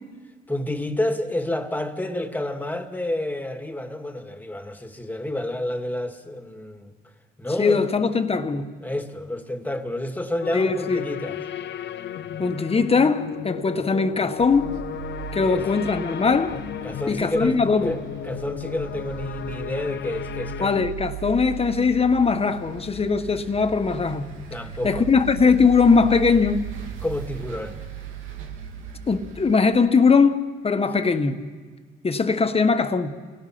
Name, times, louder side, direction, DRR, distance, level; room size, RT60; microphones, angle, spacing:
voice 1, 0.5-6.9 7.4-7.9 8.8-11.4 15.4-15.6 16.8-20.9 24.5-25.0 27.0-27.8, left 1 dB, 10° left, 2.1 m, -29 dB
voice 2, 7.6-8.7 10.5-11.0 12.4-14.8 15.3-16.6 17.1-17.9 20.6-24.3 24.8-26.6 29.1-31.4 32.0-33.1, left 4 dB, 30° left, 1.6 m, -20 dB
sound 1, 10.4-20.9, left 9 dB, 65° left, 0.8 m, -34 dB
sound 2, 14.4-29.6, right 9 dB, 90° right, 2.7 m, -38 dB
29.0 x 17.5 x 6.0 m
cardioid pair, 90°, 20 cm